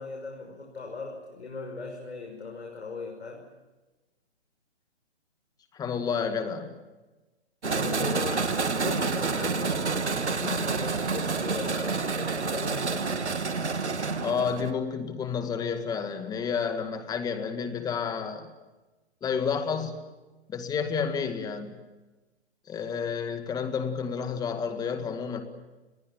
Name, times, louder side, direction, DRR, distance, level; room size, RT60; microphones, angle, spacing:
voice 1, 0.0-3.5 7.6-13.2, left 4 dB, 75° left, 1 dB, 5.8 m, -38 dB
voice 2, 5.7-6.8 14.2-18.5 19.2-20.0 20.5-21.8 22.7-25.4, left 6 dB, 10° left, 8 dB, 2.0 m, -30 dB
sound 1, 7.6-14.7, right 4 dB, 90° right, 2.1 m, -28 dB
28.5 x 21.0 x 7.5 m, 1.1 s
hypercardioid pair, 140°, 33 cm